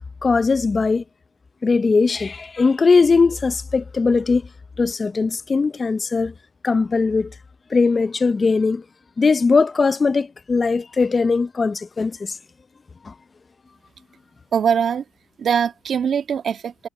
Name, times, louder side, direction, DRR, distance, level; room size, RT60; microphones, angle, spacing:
voice 1, 0.2-1.0 1.6-4.4 4.8-6.3 6.6-7.3 7.7-8.8 9.2-12.4 13.0-13.1, left 4 dB, 25° left, 0.5 m, -19 dB
voice 2, 14.5-15.0 15.4-16.9, right 7 dB, 50° right, 1.8 m, -22 dB
supercardioid pair, 85°, 0 cm